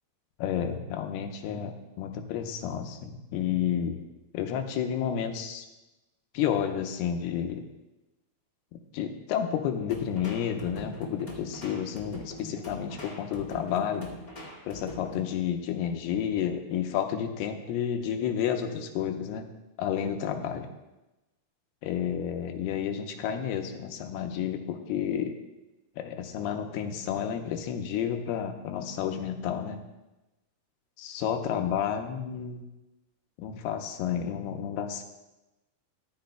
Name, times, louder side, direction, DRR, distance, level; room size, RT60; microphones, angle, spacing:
voice 1, 0.4-1.7 2.0-4.0 4.3-5.7 6.3-7.7 8.9-14.1 14.7-19.5 19.8-20.7 21.8-25.3 26.0-29.8 31.0-32.6 33.4-35.0, left 9 dB, 85° left, 5 dB, 2.7 m, -31 dB
sound 1, 9.9-15.4, left 1 dB, 25° left, 0.9 m, -42 dB
14.5 x 12.5 x 2.2 m, 1.0 s
omnidirectional pair, 4.5 m